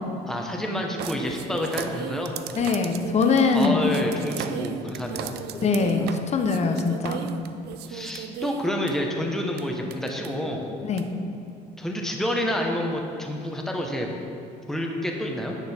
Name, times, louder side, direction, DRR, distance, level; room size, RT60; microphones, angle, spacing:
voice 1, 0.3-2.3 3.5-5.3 7.9-10.6 11.8-14.1 14.7-15.6, equal, ahead, 1 dB, 1.0 m, -28 dB
sound 1, 1.0-8.9 9.6-9.7 9.9-10.3 11.0-11.1, right 9 dB, 75° right, 0.5 m, -36 dB
voice 2, 2.6-3.8 5.6-7.2 10.8-11.1, left 4 dB, 40° left, 5 dB, 0.9 m, -22 dB
10.0 x 6.6 x 4.4 m, 2.7 s
cardioid pair, 110°, 17 cm